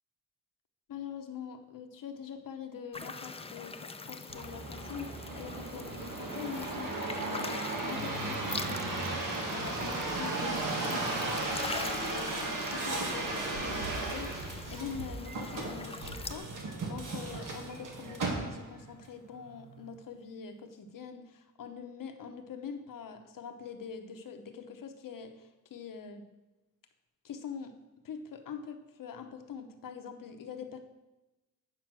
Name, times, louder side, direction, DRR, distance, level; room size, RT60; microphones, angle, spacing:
voice 1, 0.9-9.2 9.5-26.2 27.2-27.8 28.0-30.8, left 6 dB, 90° left, 6 dB, 1.0 m, -44 dB
sound 1, 2.9-16.4, left 3 dB, 20° left, 0.5 m, -43 dB
sound 2, 4.3-18.8 19.4-20.0, right 2 dB, 75° right, 1.8 m, -35 dB
9.1 x 5.5 x 6.2 m, 1.0 s
wide cardioid pair, 125°, 32 cm